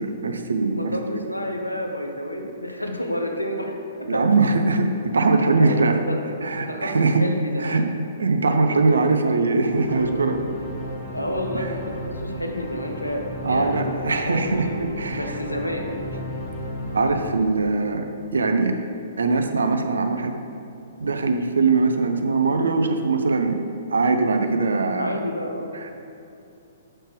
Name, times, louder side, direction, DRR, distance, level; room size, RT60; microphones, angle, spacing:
voice 1, 0.0-1.0 4.1-6.0 6.4-7.3 7.6-7.9 8.2-10.4 11.5-11.7 13.4-15.3 16.8-18.1 18.3-18.8 19.2-20.4 21.0-23.6 23.9-25.2 25.8-25.9, right 3 dB, 65° right, 6 dB, 0.6 m, -21 dB
voice 2, 0.6-3.8 4.1-4.3 5.6-7.9 10.7-15.9 25.0-25.7, equal, 85° left, 2 dB, 0.8 m, -30 dB
sound 1, 9.7-18.1, equal, 30° left, 1.6 m, -33 dB
7.5 x 6.4 x 3.2 m, 2.7 s
figure-of-eight pair, 120°, 0 cm